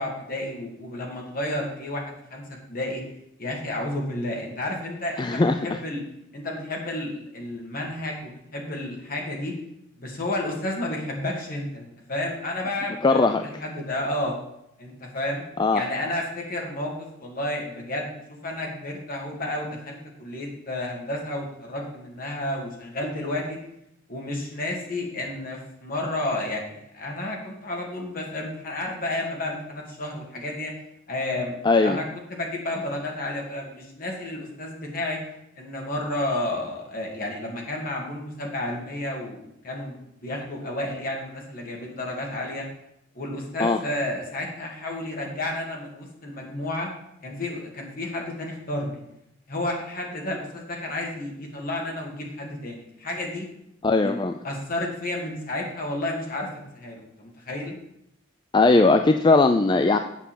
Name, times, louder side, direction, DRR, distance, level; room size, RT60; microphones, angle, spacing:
voice 1, 0.0-2.4 2.7-3.0 3.4-6.0 6.3-9.5 10.0-14.4 14.8-15.4 15.7-23.6 24.1-30.7 31.1-35.2 35.6-42.6 43.1-46.9 47.2-49.0 49.5-53.5 54.0-54.2 54.4-57.8, left 1 dB, 50° left, 0 dB, 2.3 m, -31 dB
voice 2, 5.2-5.6 13.0-13.6 15.6-15.8 31.6-32.0 43.6-43.8 53.8-54.3 58.5-60.0, left 3 dB, 25° left, 7 dB, 0.4 m, -19 dB
8.3 x 5.5 x 7.6 m, 0.78 s
head